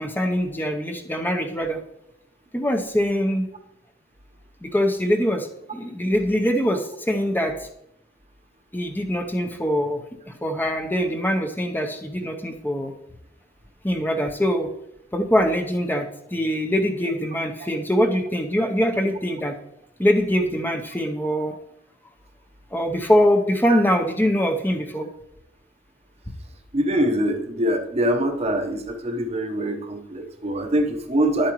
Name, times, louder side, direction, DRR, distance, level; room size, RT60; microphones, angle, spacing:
voice 1, 0.0-1.8 2.5-3.5 4.6-7.7 8.7-10.0 10.3-12.9 13.8-14.7 15.1-19.5 20.0-21.6 22.7-25.1, equal, 10° left, 4 dB, 0.7 m, -23 dB
voice 2, 26.7-31.5, right 1 dB, 35° right, 5 dB, 0.9 m, -24 dB
11.0 x 8.6 x 3.1 m, 0.79 s
head